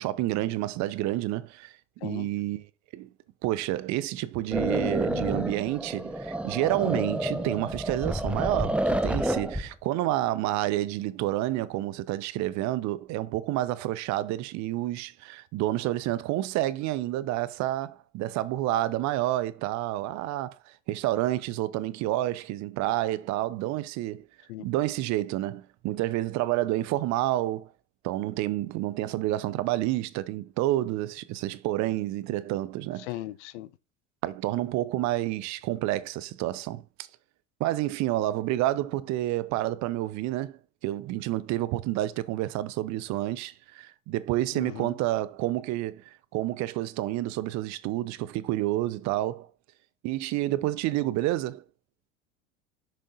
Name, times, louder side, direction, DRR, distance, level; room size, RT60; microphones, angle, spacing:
voice 1, 0.0-1.7 2.0-2.7 2.9-3.1 3.4-24.3 24.6-27.7 28.0-33.1 34.2-36.8 37.6-49.5 50.0-51.6, right 15 dB, 45° right, 0.8 m, -29 dB
sound 1, 4.5-9.7, right 1 dB, 5° right, 0.8 m, -29 dB
voice 2, 33.0-33.7 44.5-44.9, left 16 dB, 65° left, 0.8 m, -37 dB
6.6 x 6.2 x 3.9 m
hypercardioid pair, 80°, 38 cm